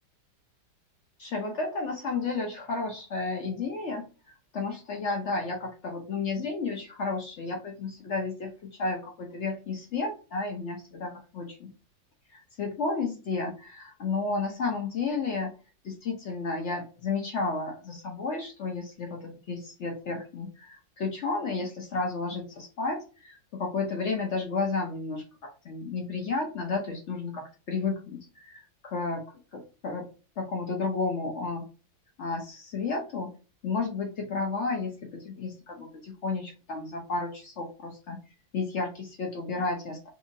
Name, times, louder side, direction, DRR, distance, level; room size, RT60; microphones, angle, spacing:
voice 1, 1.2-11.7 12.3-15.6 15.8-29.3 29.5-30.1 30.4-31.7 32.2-33.3 33.6-38.2 38.5-40.1, left 3 dB, 70° left, 2 dB, 0.6 m, -32 dB
2.9 x 2.7 x 2.6 m, 0.33 s
omnidirectional pair, 2.0 m